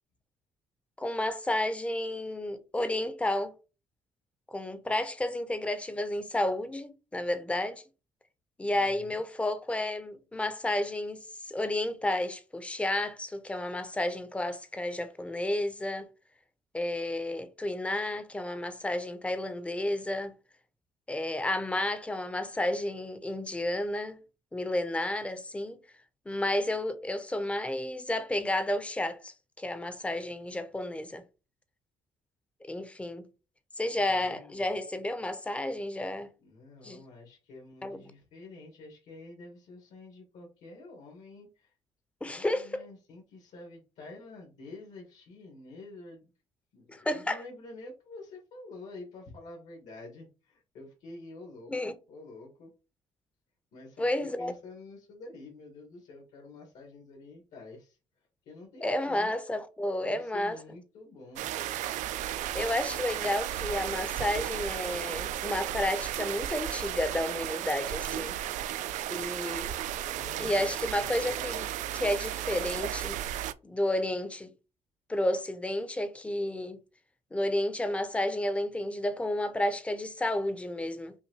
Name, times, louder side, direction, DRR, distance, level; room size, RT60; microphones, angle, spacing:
voice 1, 1.0-3.5 4.5-7.8 8.6-16.1 16.7-20.3 21.1-24.2 24.5-25.8 26.3-31.2 32.6-33.3 33.8-36.3 36.8-37.0 37.8-38.1 42.2-42.8 46.9-47.4 51.7-52.0 54.0-54.5 58.8-60.6 62.5-68.4 69.1-69.7 70.4-73.2 73.6-74.5 75.1-76.8 77.3-81.1, left 1 dB, 10° left, 0.6 m, -31 dB
voice 2, 8.7-9.2 33.8-34.7 36.4-41.7 42.2-46.3 46.7-52.7 53.7-58.0 58.4-59.3 60.0-61.5 70.1-71.9, left 2 dB, 70° left, 1.7 m, -48 dB
sound 1, 61.4-73.5, right 12 dB, 75° right, 0.4 m, -34 dB
5.6 x 2.6 x 2.9 m
cardioid pair, 140°, 13 cm